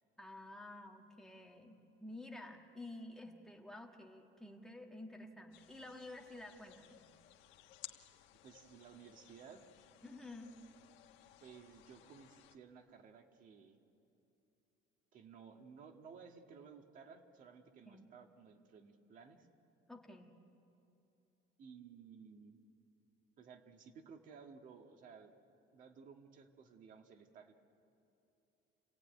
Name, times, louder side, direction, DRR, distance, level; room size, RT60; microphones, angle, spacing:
voice 1, 0.2-7.0 10.0-10.5 17.9-18.0 19.9-20.4, left 2 dB, 5° left, 1 dB, 1.5 m, -51 dB
sound 1, 5.5-12.6, left 13 dB, 85° left, 1.3 m, -59 dB
voice 2, 8.4-9.6 11.4-13.8 15.1-19.5 21.6-22.6 23.4-25.3 25.7-27.5, right 6 dB, 45° right, 5 dB, 1.7 m, -57 dB
29.0 x 17.0 x 9.2 m, 2.9 s
cardioid pair, 170°, 19 cm